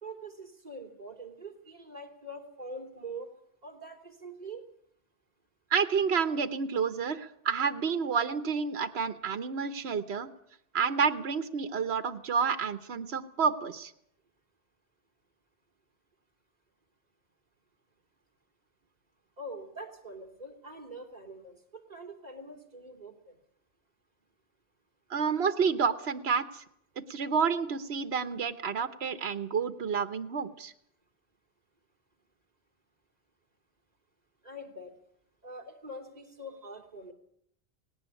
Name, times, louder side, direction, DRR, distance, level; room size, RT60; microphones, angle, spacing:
voice 1, 0.0-3.3 3.6-4.6 19.4-23.3 34.4-34.9 35.4-37.1, right 1 dB, 40° right, 4 dB, 3.2 m, -44 dB
voice 2, 5.7-10.3 10.7-13.9 25.1-26.6 27.1-30.7, right 6 dB, 75° right, 10 dB, 1.3 m, -29 dB
18.5 x 17.5 x 8.3 m, 0.70 s
omnidirectional pair, 1.1 m